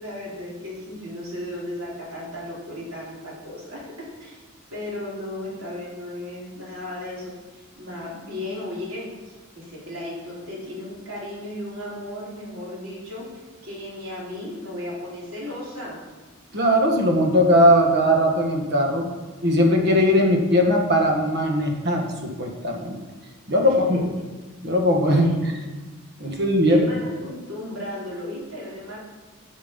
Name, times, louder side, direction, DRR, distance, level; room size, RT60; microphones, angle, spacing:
voice 1, 0.0-3.9 4.2-4.4 4.7-13.2 13.6-16.0 23.6-23.7 25.0-25.5 26.2-29.0, left 1 dB, 80° right, -5 dB, 3.6 m, -35 dB
voice 2, 16.5-19.1 19.4-23.0 23.5-24.1 24.6-25.5 26.2-26.8, equal, 50° right, 2 dB, 1.5 m, -19 dB
11.0 x 6.3 x 5.3 m, 1.3 s
head